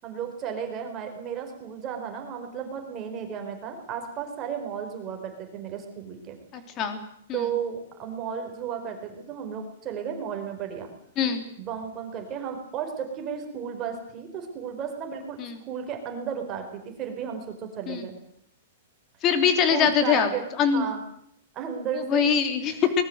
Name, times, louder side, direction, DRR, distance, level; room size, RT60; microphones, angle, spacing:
voice 1, 0.0-6.4 7.3-10.9 11.6-18.1 19.7-20.4 20.7-21.0 21.5-22.3 22.6-22.9, right 7 dB, 20° right, 4 dB, 4.7 m, -34 dB
voice 2, 6.5-7.0 7.3-7.4 11.2-11.4 15.4-15.6 17.9-18.0 19.2-20.3 20.6-20.8 22.1-22.8, left 7 dB, 25° left, 8 dB, 3.2 m, -23 dB
24.0 x 20.5 x 8.0 m, 0.72 s
supercardioid pair, 170°, 0 cm